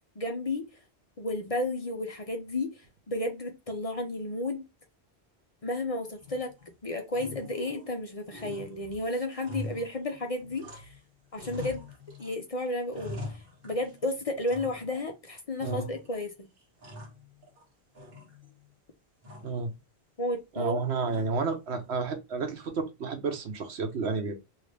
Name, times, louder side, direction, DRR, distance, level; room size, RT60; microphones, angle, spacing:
voice 1, 0.2-0.7 1.2-4.6 5.6-6.5 6.8-10.9 11.3-11.8 12.2-13.4 13.6-16.5 20.2-20.8 21.0-21.2, left 1 dB, 40° left, 0.6 m, -32 dB
sound 1, 6.2-6.7 7.1-8.0 8.3-11.0 11.3-12.3 12.7-14.0 14.5-15.1 15.6-16.2 16.6-17.6 18.0-18.7 19.2-19.7 21.1-21.6, left 2 dB, 60° right, 1.5 m, -43 dB
voice 2, 20.6-24.4, right 4 dB, 85° right, 1.1 m, -31 dB
3.0 x 2.9 x 3.2 m
omnidirectional pair, 1.1 m